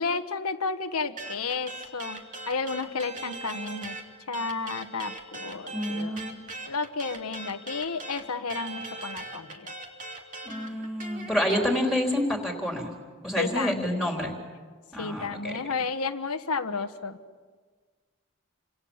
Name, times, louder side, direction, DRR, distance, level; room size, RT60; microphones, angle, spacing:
voice 1, 0.0-4.0 4.3-6.2 6.7-9.7 13.4-14.1 15.0-17.2, left 4 dB, 90° left, 7 dB, 1.3 m, -32 dB
sound 1, 1.2-4.0 4.3-11.7, right 2 dB, 35° right, 2.9 m, -39 dB
voice 2, 5.7-6.5 10.4-12.9 13.2-14.3 14.9-15.5, left 1 dB, ahead, 1 dB, 4.0 m, -28 dB
30.0 x 26.0 x 7.3 m, 1.5 s
head